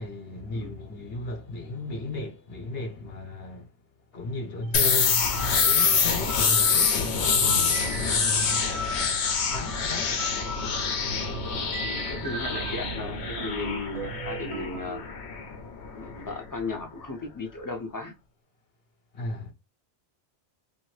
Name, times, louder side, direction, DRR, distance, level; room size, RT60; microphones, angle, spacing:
voice 1, 0.0-3.8 4.1-8.7 9.5-10.7 11.5-11.6 11.9-12.1 19.1-19.5, left 2 dB, 65° left, 1.1 m, -35 dB
sound 1, 4.6-4.8 5.3-12.9 13.4-15.0, right 1 dB, 50° right, 0.5 m, -38 dB
sound 2, 4.7-16.4, left 5 dB, 85° left, 1.0 m, -26 dB
sound 3, 6.2-14.9, right 4 dB, 80° right, 0.9 m, -42 dB
voice 2, 11.8-15.0 15.9-18.1, left 3 dB, 25° left, 0.5 m, -35 dB
2.6 x 2.6 x 3.1 m
omnidirectional pair, 1.1 m